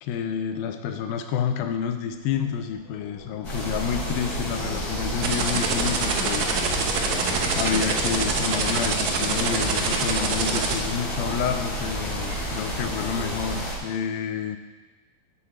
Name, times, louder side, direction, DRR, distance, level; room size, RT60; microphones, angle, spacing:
voice 1, 0.0-7.2 7.6-14.6, left 8 dB, 80° left, 7 dB, 2.5 m, -29 dB
sound 1, 2.1-11.3, left 4 dB, 55° left, 3.5 m, -37 dB
sound 2, 3.4-13.8, right 1 dB, 25° left, 2.8 m, -30 dB
sound 3, 5.2-10.7, right 5 dB, 70° right, 1.8 m, -25 dB
15.0 x 7.1 x 4.3 m, 1.2 s
omnidirectional pair, 4.4 m